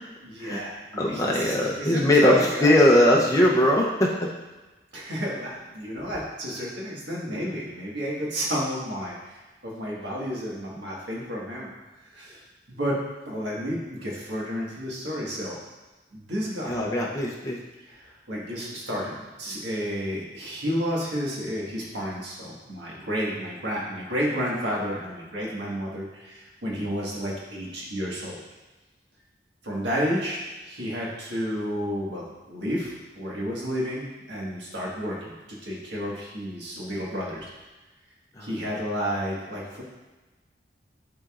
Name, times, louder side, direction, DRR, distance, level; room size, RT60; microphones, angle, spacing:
voice 1, 0.2-2.8 4.9-11.7 12.1-12.4 12.7-13.0 13.2-15.6 16.1-16.8 17.8-28.4 29.6-37.4 38.4-39.8, equal, 90° right, -4 dB, 1.7 m, -31 dB
voice 2, 0.9-4.3 16.7-17.6 38.4-38.5, left 1 dB, 20° left, -3 dB, 0.7 m, -20 dB
10.5 x 3.9 x 2.5 m, 1.2 s
head